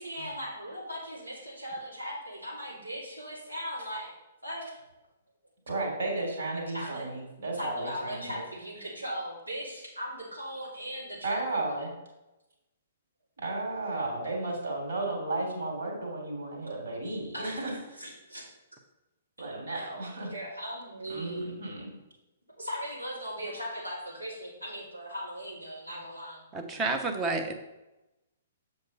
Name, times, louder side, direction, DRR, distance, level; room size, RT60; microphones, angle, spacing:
voice 1, 0.0-4.1 4.4-4.7 6.7-7.1 7.5-11.9 17.3-17.6 18.0-18.4 19.7-19.9 20.3-21.6 22.5-26.4, equal, 90° right, -7 dB, 3.1 m, -38 dB
voice 2, 5.7-8.4 11.2-11.9 13.4-17.7 19.4-20.3 21.1-21.9, right 2 dB, 60° right, 0 dB, 3.1 m, -34 dB
voice 3, 26.5-27.5, right 3 dB, 15° right, 5 dB, 1.0 m, -30 dB
8.0 x 5.5 x 5.5 m, 0.98 s
figure-of-eight pair, 120°, 0 cm